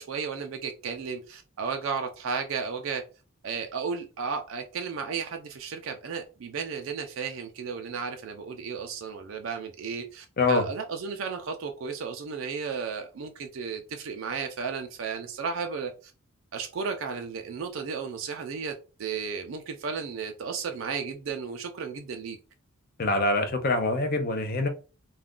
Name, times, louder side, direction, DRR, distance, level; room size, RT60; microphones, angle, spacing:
voice 1, 0.0-3.0 3.4-16.1 16.5-18.7 19.0-22.4, right 5 dB, 65° right, 0.4 m, -34 dB
voice 2, 23.0-24.7, left 2 dB, 45° left, 0.5 m, -25 dB
2.4 x 2.2 x 3.6 m
head